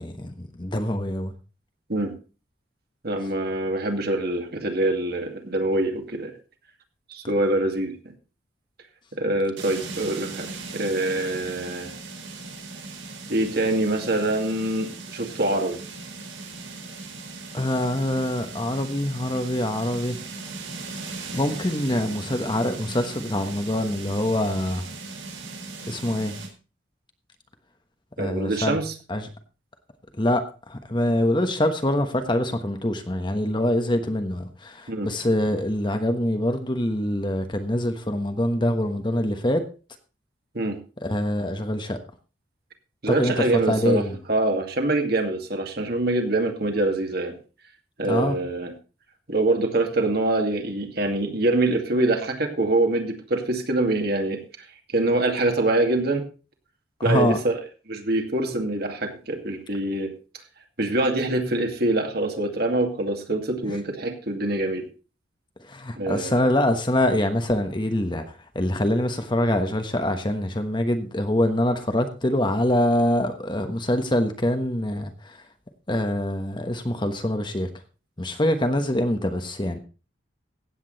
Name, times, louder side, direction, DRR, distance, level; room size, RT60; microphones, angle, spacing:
voice 1, 0.0-1.3 17.5-20.2 21.3-24.8 25.8-26.3 28.2-28.8 29.1-29.3 30.2-39.6 41.0-42.0 43.1-44.1 48.1-48.4 57.0-57.4 63.6-63.7 65.7-68.2 68.5-75.4 75.9-77.7 78.2-79.8, left 1 dB, 25° left, 1.2 m, -24 dB
voice 2, 3.0-6.3 7.1-8.1 9.2-11.9 13.3-15.8 28.2-28.9 34.9-35.1 40.5-40.8 43.0-47.4 48.0-48.7 49.3-54.4 54.9-56.2 57.0-57.5 57.9-60.1 60.8-64.8 66.0-66.5, right 2 dB, 55° right, 2.3 m, -24 dB
sound 1, 9.6-26.5, right 3 dB, 85° right, 4.2 m, -38 dB
15.5 x 8.6 x 4.1 m
head